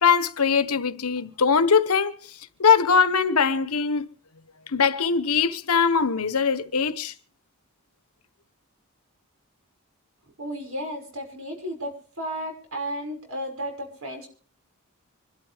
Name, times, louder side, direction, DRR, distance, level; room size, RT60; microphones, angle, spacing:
voice 1, 0.0-2.1 2.6-4.1 4.7-7.1, left 6 dB, 85° left, 1.1 m, -21 dB
voice 2, 10.4-11.9 12.2-14.3, equal, 70° right, 6.1 m, -33 dB
26.0 x 12.5 x 3.5 m
head